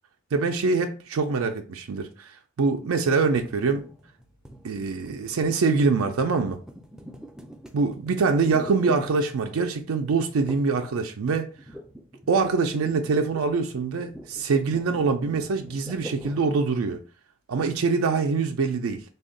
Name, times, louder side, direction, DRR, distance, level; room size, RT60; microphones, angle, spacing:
voice 1, 0.3-3.8 4.6-6.6 7.7-11.5 12.3-17.0 17.5-19.0, right 4 dB, 85° right, 0.4 m, -24 dB
sound 1, 3.4-9.7 10.5-10.9 11.1-16.8, right 1 dB, 5° right, 0.3 m, -44 dB
3.4 x 2.3 x 3.8 m
head